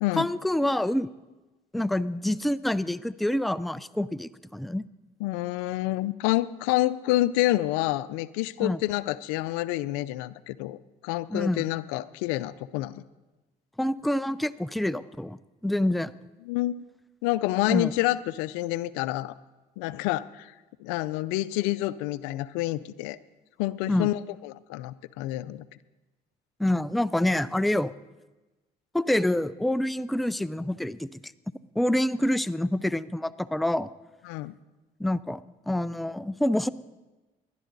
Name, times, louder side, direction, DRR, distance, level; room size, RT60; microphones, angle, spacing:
voice 1, 0.2-1.1 1.7-4.9 8.6-8.8 11.3-11.6 13.8-16.1 17.7-17.9 23.9-24.1 26.6-27.9 28.9-31.3 31.8-33.9 35.0-35.4 35.7-36.7, left 1 dB, ahead, 15 dB, 0.4 m, -27 dB
voice 2, 5.2-13.1 16.5-16.8 17.2-19.3 19.8-20.5 20.8-23.2 23.6-25.6 34.3-34.6, left 17 dB, 85° left, 17 dB, 0.5 m, -28 dB
19.5 x 11.0 x 4.0 m, 1.1 s
supercardioid pair, 75°, 20 cm